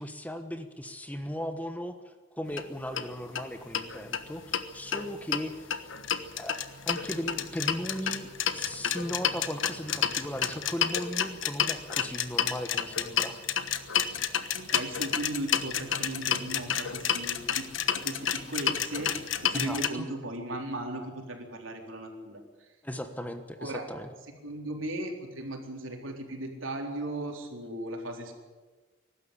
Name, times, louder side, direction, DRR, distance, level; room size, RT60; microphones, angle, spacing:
voice 1, 0.0-5.9 6.4-13.4 19.5-20.1 22.8-24.1, equal, 10° left, 7 dB, 1.2 m, -37 dB
sound 1, 2.5-2.6 3.0-3.1 3.4-3.5 3.7-4.6 4.9-19.9, left 8 dB, 80° left, 1.3 m, -30 dB
voice 2, 14.5-17.7 17.9-22.4 23.6-23.8 24.4-28.3, right 1 dB, 90° right, 2 dB, 3.9 m, -37 dB
22.0 x 12.5 x 10.0 m, 1.3 s
head